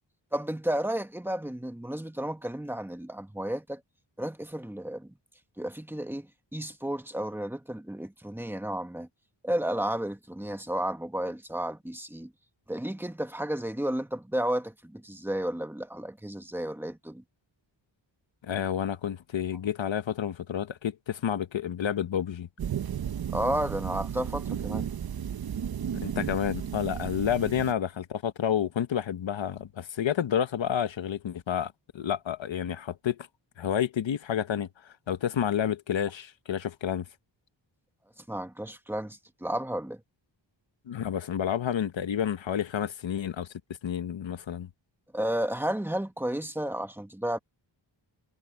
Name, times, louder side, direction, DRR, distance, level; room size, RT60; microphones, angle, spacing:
voice 1, 0.3-3.8 4.2-5.1 5.6-9.1 9.4-12.3 12.7-17.2 23.3-24.9 38.3-40.0 45.1-47.4, right 1 dB, 5° right, 1.2 m, -32 dB
voice 2, 18.4-22.5 26.0-33.3 33.6-37.0 40.9-43.5 43.8-44.7, left 9 dB, 75° left, 1.1 m, -30 dB
sound 1, 22.6-27.7, right 9 dB, 50° right, 0.7 m, -34 dB
wide cardioid pair, 160°, 46 cm